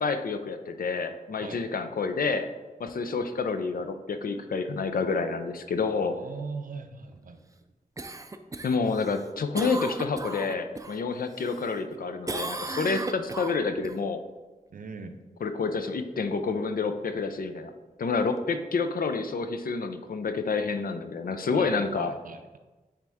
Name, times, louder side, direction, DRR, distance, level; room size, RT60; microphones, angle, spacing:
voice 1, 0.0-2.5 2.8-6.2 8.6-14.2 15.4-17.7 18.0-22.1, left 4 dB, 80° left, 8 dB, 0.5 m, -29 dB
voice 2, 6.2-7.4 14.7-15.2 21.5-22.6, right 4 dB, 70° right, 7 dB, 0.6 m, -40 dB
Cough, 8.0-11.0 11.4-12.0 12.3-13.9 18.4-18.5, right 2 dB, 25° right, 0.4 m, -36 dB
8.6 x 3.5 x 3.5 m, 1.2 s
wide cardioid pair, 80°, 15 cm